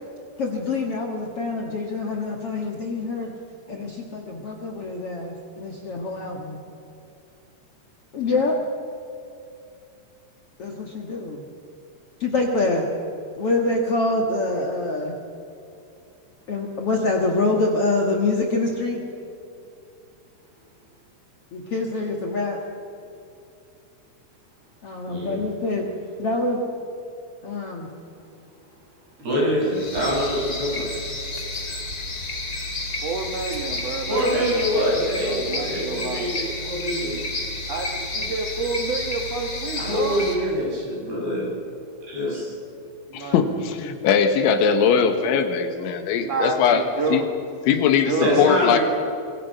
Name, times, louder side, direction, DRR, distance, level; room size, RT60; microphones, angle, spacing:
voice 1, 0.4-3.3 3.7-6.6 8.1-8.6 10.6-11.5 12.2-12.8 13.4-15.2 16.5-19.0 21.5-22.6 24.8-25.8 26.2-26.6 27.4-27.9, left 2 dB, 65° left, 0 dB, 1.4 m, -25 dB
voice 2, 25.1-25.4 29.2-30.8 34.1-37.2 39.8-41.5 42.0-42.5 48.2-48.8, equal, 60° right, -4 dB, 8.5 m, -25 dB
sound 1, 29.7-40.4, left 2 dB, 30° left, 1.8 m, -31 dB
voice 3, 33.0-34.4 34.7-34.9 35.2-36.3 37.7-40.2 43.1-43.4 46.2-47.3 47.8-48.4, right 4 dB, 80° right, 2 dB, 1.4 m, -29 dB
voice 4, 43.1-46.8 47.1-47.2 47.7-48.8, left 7 dB, 85° left, 6 dB, 3.9 m, -20 dB
25.5 x 23.0 x 5.8 m, 2.6 s
omnidirectional pair, 5.3 m